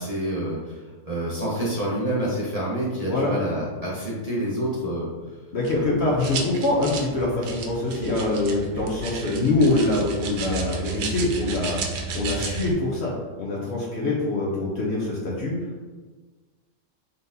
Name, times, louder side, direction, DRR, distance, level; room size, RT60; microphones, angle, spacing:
voice 1, 0.0-5.1 5.7-6.1, right 1 dB, 40° right, -7 dB, 0.5 m, -28 dB
voice 2, 5.5-11.8 12.1-13.1 13.4-15.6, left 2 dB, 60° left, -4 dB, 0.7 m, -24 dB
sound 1, 5.6-12.7, right 5 dB, 85° right, 1.3 m, -33 dB
4.0 x 3.8 x 2.6 m, 1.4 s
omnidirectional pair, 1.8 m